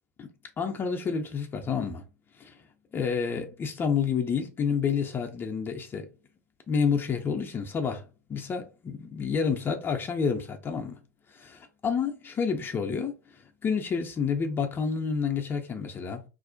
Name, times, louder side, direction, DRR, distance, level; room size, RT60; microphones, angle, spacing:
voice 1, 0.6-2.0 2.4-2.6 2.9-6.1 6.7-8.0 8.3-11.0 11.3-13.2 13.6-16.2, left 6 dB, 25° left, 0.4 m, -29 dB
2.5 x 2.0 x 2.5 m
figure-of-eight pair, 85°, 9 cm